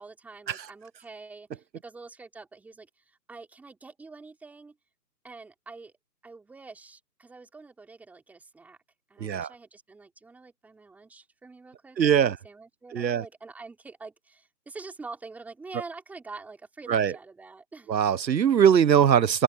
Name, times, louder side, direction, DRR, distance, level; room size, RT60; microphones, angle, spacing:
voice 1, 0.0-4.8 5.2-5.9 6.2-8.8 9.1-17.9, right 3 dB, 5° right, 4.0 m, -46 dB
voice 2, 12.0-12.4 12.9-13.2 16.9-17.1 17.9-19.4, right 8 dB, 80° right, 0.9 m, -21 dB
open air
hypercardioid pair, 160°, 50 cm